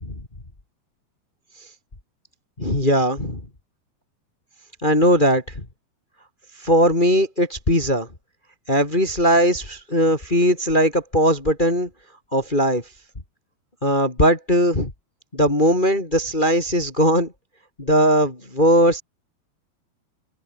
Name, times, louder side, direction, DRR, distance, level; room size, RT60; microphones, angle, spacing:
voice 1, 2.6-3.4 4.8-5.6 6.6-8.1 8.7-11.9 12.3-12.8 13.8-14.9 15.3-17.3 17.8-19.0, equal, 15° left, 2.4 m, -19 dB
omnidirectional pair, 4.7 m